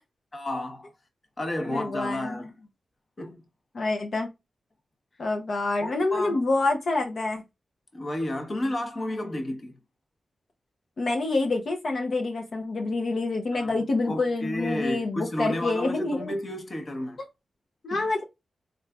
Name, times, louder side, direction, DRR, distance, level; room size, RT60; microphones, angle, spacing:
voice 1, 0.3-0.9 1.4-2.5 3.2-3.4 5.8-6.4 7.9-9.8 13.5-13.8 14.1-17.2 17.9-18.0, left 1 dB, 45° left, 0.9 m, -32 dB
voice 2, 1.7-2.2 3.7-4.3 5.2-7.4 11.0-16.3 17.8-18.2, left 2 dB, 65° left, 0.7 m, -27 dB
3.8 x 3.2 x 2.3 m
cardioid pair, 75°, 0 cm